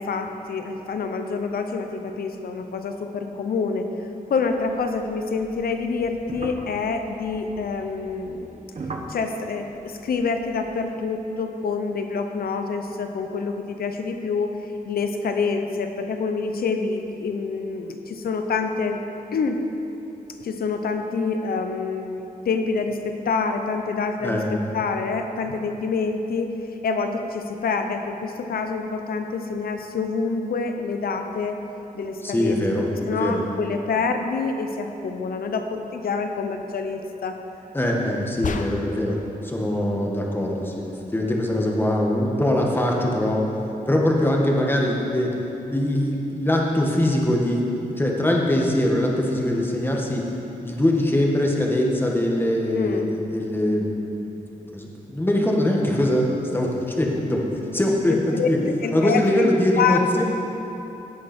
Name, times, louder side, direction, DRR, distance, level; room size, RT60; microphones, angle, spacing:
voice 1, 0.0-3.9 4.3-8.7 9.1-14.5 14.9-19.0 19.3-19.6 20.4-26.6 26.8-31.6 31.9-32.6 32.9-37.4 52.8-53.1 58.1-58.5 58.8-59.5 59.8-60.2, left 4 dB, 85° left, 6 dB, 0.9 m, -27 dB
sound 1, 4.4-11.0, right 3 dB, 50° right, 1.2 m, -40 dB
voice 2, 24.2-24.6 32.2-33.4 37.7-43.5 43.9-45.3 45.7-50.2 50.6-54.3 54.7-57.4 57.7-58.6 58.9-60.2, left 1 dB, 15° left, -1 dB, 1.8 m, -22 dB
sound 2, 38.4-39.2, left 4 dB, 60° left, 0.8 m, -30 dB
16.5 x 8.7 x 4.5 m, 3.0 s
wide cardioid pair, 110°, 15 cm